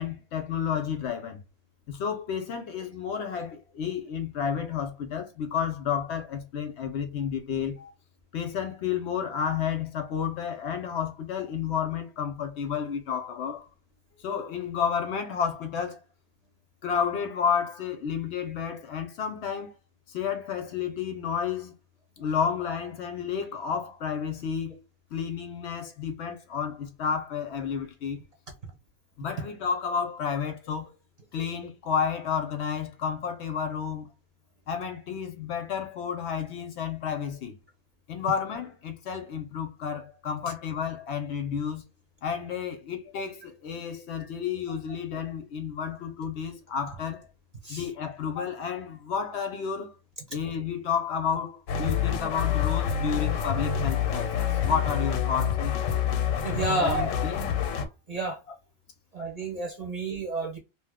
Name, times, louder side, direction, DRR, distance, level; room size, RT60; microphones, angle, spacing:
voice 1, 0.0-1.4 1.9-7.8 8.3-13.7 14.2-16.0 16.8-19.7 20.1-21.7 22.2-24.8 25.1-28.2 29.2-30.9 31.3-34.1 34.7-37.6 38.1-41.8 42.2-47.3 47.7-49.9 50.3-55.8 56.8-57.5, left 7 dB, 65° left, 0.8 m, -31 dB
sound 1, 51.7-57.9, left 8 dB, 90° left, 1.0 m, -27 dB
voice 2, 56.4-57.1 58.1-58.4 59.1-60.6, right 2 dB, 35° right, 0.7 m, -30 dB
2.9 x 2.0 x 3.4 m
omnidirectional pair, 1.3 m